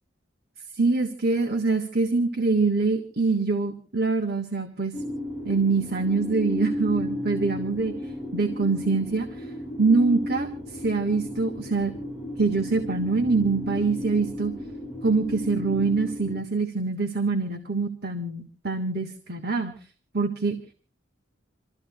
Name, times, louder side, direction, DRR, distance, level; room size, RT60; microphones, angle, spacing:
voice 1, 0.7-4.9 5.4-9.5 9.8-11.9 12.4-14.5 15.0-19.7 20.1-20.6, right 4 dB, 55° right, 5 dB, 1.5 m, -24 dB
sound 1, 4.9-16.4, left 1 dB, 10° right, 1.8 m, -34 dB
28.5 x 14.0 x 2.3 m, 0.39 s
head